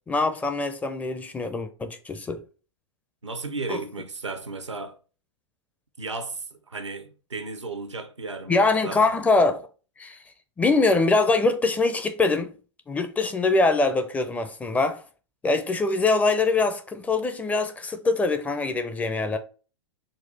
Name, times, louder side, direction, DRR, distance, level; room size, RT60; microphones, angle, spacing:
voice 1, 0.0-2.4 3.7-3.8 8.5-9.6 10.0-10.2 10.6-12.5 12.9-15.0 15.4-19.4, left 3 dB, 10° left, 0.4 m, -23 dB
voice 2, 3.2-5.0 6.0-9.1, right 3 dB, 85° right, 0.7 m, -34 dB
4.0 x 2.4 x 3.8 m
figure-of-eight pair, 100°, 15 cm